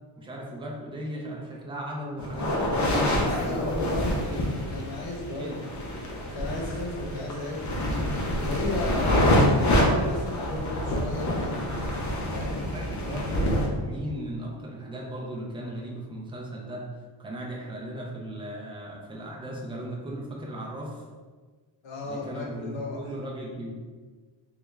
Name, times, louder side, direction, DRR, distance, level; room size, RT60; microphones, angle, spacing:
voice 1, 0.2-3.9 4.2-4.4 5.4-5.7 8.8-9.1 12.7-13.5 13.8-16.9 17.2-21.0 22.0-23.7, right 1 dB, 10° right, -2 dB, 0.4 m, -37 dB
sound 1, 2.2-13.7, left 1 dB, 40° left, 0.6 m, -26 dB
voice 2, 3.2-8.0 8.4-11.6 12.3-12.7 21.8-23.1, left 2 dB, 65° left, -2 dB, 1.0 m, -35 dB
3.2 x 2.4 x 3.1 m, 1.4 s
cardioid pair, 140°, 47 cm